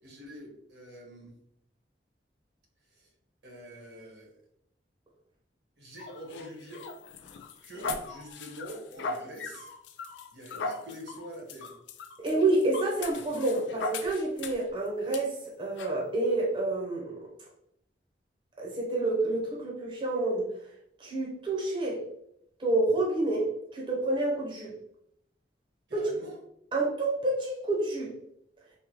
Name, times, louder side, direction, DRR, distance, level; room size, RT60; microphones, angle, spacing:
voice 1, 0.0-1.4 2.9-3.1 3.4-4.4 5.8-7.1 7.6-9.7 10.3-11.8 25.9-26.4, equal, 85° right, -2 dB, 1.2 m, -45 dB
sound 1, 6.0-14.7 15.1-15.2 15.8-16.0, left 3 dB, 85° left, 0.3 m, -39 dB
voice 2, 12.2-17.1 18.6-20.5 21.0-22.0 22.6-24.7 25.9-26.1 26.7-28.1, right 2 dB, 30° right, -3 dB, 0.6 m, -28 dB
3.4 x 2.2 x 2.9 m, 0.74 s
head